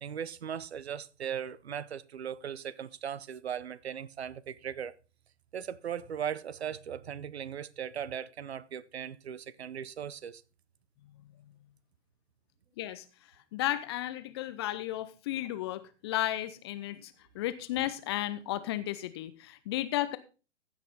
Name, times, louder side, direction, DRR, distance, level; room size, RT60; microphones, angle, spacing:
voice 1, 0.0-4.9 5.5-10.4, right 8 dB, 60° right, 0.7 m, -38 dB
voice 2, 13.5-20.2, left 14 dB, 20° left, 0.5 m, -34 dB
15.5 x 6.0 x 4.0 m
figure-of-eight pair, 120°, 36 cm